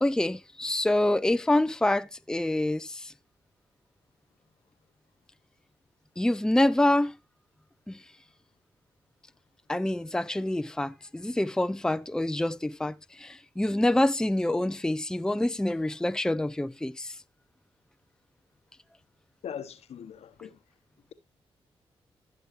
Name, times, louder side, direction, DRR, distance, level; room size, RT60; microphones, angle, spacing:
voice 1, 0.0-3.1 6.2-7.1 7.9-8.0 9.7-17.1, left 1 dB, 5° left, 0.5 m, -26 dB
voice 2, 19.4-20.6, left 8 dB, 75° left, 1.1 m, -40 dB
15.5 x 6.6 x 2.6 m
supercardioid pair, 45°, 11 cm